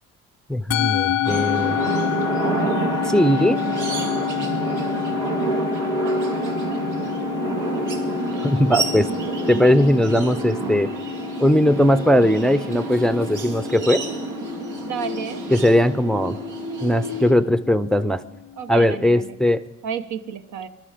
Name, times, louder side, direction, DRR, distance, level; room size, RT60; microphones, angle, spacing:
voice 1, 0.5-1.8 3.0-3.6 8.4-9.1 9.5-10.9 11.4-14.0 15.5-16.4 16.8-18.2 18.7-19.6, equal, ahead, 12 dB, 0.5 m, -19 dB
Musical instrument, 0.7-19.2, left 12 dB, 60° left, 0.6 m, -29 dB
sound 1, 1.2-17.3, right 3 dB, 85° right, 2.3 m, -28 dB
voice 2, 14.8-15.4 18.6-19.4 19.8-20.7, right 7 dB, 70° right, 8 dB, 1.1 m, -31 dB
23.5 x 12.0 x 5.1 m, 1.0 s
cardioid pair, 90°, 30 cm